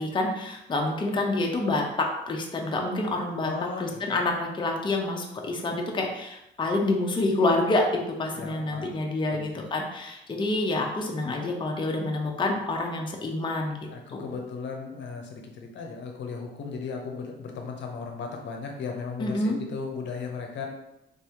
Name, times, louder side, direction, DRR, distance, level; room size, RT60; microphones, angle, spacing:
voice 1, 0.0-3.5 3.8-14.3 19.2-19.6, left 2 dB, 25° left, 0 dB, 0.6 m, -27 dB
voice 2, 3.4-4.0 8.3-8.9 9.3-9.7 13.9-20.7, left 5 dB, 65° left, 2 dB, 0.8 m, -36 dB
3.5 x 2.7 x 3.5 m, 0.88 s
cardioid pair, 90°, 20 cm